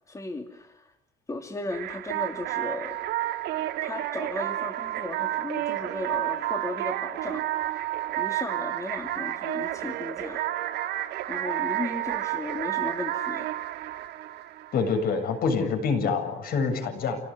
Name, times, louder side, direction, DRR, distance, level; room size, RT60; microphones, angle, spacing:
voice 1, 0.1-1.0 1.3-3.1 3.8-10.5 10.9-13.5, left 2 dB, 20° left, 5 dB, 2.7 m, -36 dB
sound 1, 1.7-15.2, right 14 dB, 80° right, 1.8 m, -31 dB
voice 2, 14.7-17.2, left 5 dB, 65° left, 6 dB, 7.6 m, -26 dB
28.5 x 18.5 x 9.7 m, 0.85 s
cardioid pair, 110°, 17 cm